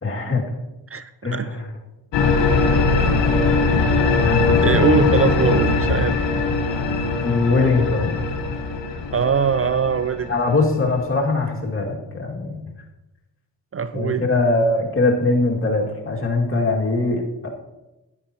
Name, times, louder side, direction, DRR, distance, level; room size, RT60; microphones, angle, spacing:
voice 1, 0.0-0.4 1.2-1.7 4.2-4.4 7.2-8.2 10.3-12.6 13.9-17.5, left 3 dB, 25° left, -1 dB, 2.3 m, -21 dB
voice 2, 0.9-1.5 4.6-6.2 9.1-10.3 13.7-14.3, right 6 dB, 30° right, 13 dB, 0.5 m, -21 dB
sound 1, 2.1-11.0, left 4 dB, 65° left, 1.4 m, -20 dB
11.0 x 9.6 x 3.0 m, 1.0 s
supercardioid pair, 45°, 46 cm